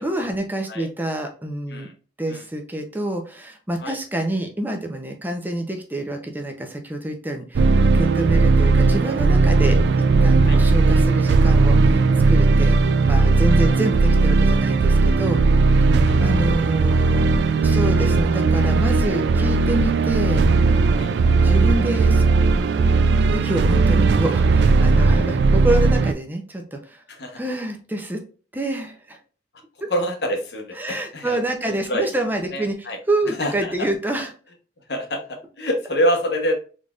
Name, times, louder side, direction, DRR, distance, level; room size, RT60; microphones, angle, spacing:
voice 1, 0.0-1.9 2.2-9.8 10.2-15.4 16.2-17.3 17.6-20.5 21.4-22.2 23.3-27.0 27.3-28.2 28.5-29.2 29.8-29.9 30.7-34.3, right 1 dB, 10° right, 4 dB, 0.6 m, -27 dB
sound 1, 7.5-26.1, right 3 dB, 75° right, 0.3 m, -17 dB
voice 2, 27.1-27.4 29.9-31.4 31.9-32.1 32.5-33.0 33.3-33.7 34.9-36.5, equal, 70° left, 4 dB, 1.0 m, -26 dB
3.9 x 3.4 x 2.4 m, 0.37 s
head